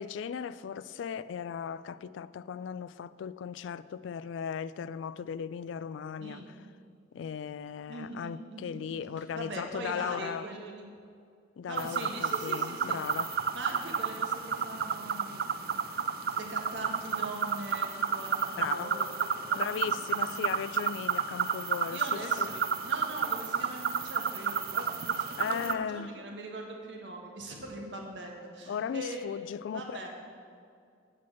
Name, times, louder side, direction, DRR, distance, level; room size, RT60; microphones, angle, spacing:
voice 1, 0.0-6.6 7.1-10.5 11.6-13.3 18.6-18.9 19.6-22.5 25.4-26.2 28.7-30.0, left 7 dB, 85° left, 0.3 m, -37 dB
voice 2, 6.2-6.5 7.9-8.8 9.2-10.9 11.7-13.2 13.5-19.9 20.2-20.5 21.3-21.4 21.9-29.2 29.7-30.1, right 2 dB, 75° right, 1.4 m, -42 dB
sound 1, 11.8-25.7, right 6 dB, 55° right, 0.4 m, -31 dB
8.4 x 6.0 x 7.4 m
head